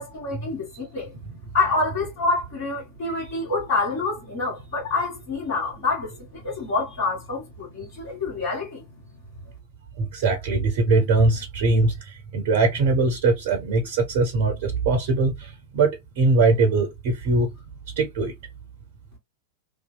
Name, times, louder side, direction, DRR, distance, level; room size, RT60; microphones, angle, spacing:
voice 1, 0.0-1.1 1.5-8.8, left 3 dB, 50° left, 1.4 m, -27 dB
voice 2, 10.0-17.5 18.0-18.3, right 3 dB, 50° right, 0.5 m, -22 dB
2.7 x 2.1 x 2.2 m
figure-of-eight pair, 90°, 0 cm